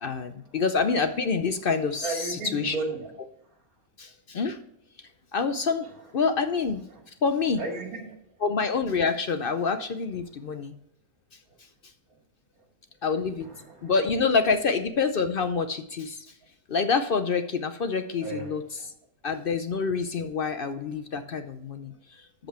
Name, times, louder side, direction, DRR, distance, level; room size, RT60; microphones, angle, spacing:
voice 1, 0.0-2.8 4.0-4.6 5.3-5.9 6.1-6.8 7.2-7.6 8.4-10.7 13.0-13.5 13.8-16.3 16.7-18.9 19.2-22.5, left 5 dB, 55° left, 9 dB, 0.6 m, -27 dB
voice 2, 2.0-3.1 7.6-8.1 13.4-13.9 18.2-18.5, right 3 dB, 85° right, 2 dB, 2.7 m, -33 dB
13.0 x 5.4 x 4.3 m, 0.75 s
omnidirectional pair, 1.5 m